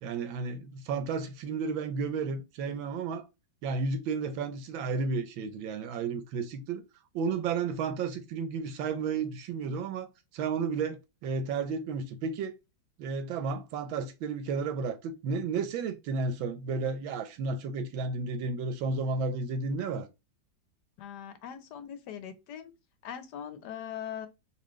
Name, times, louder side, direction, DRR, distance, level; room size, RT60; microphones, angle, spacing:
voice 1, 0.0-3.2 3.6-6.8 7.1-10.1 10.3-12.6 13.0-20.1, right 4 dB, 85° right, 1.5 m, -32 dB
voice 2, 21.0-22.7 23.0-24.3, left 9 dB, 70° left, 1.1 m, -41 dB
4.3 x 2.9 x 3.0 m
omnidirectional pair, 2.1 m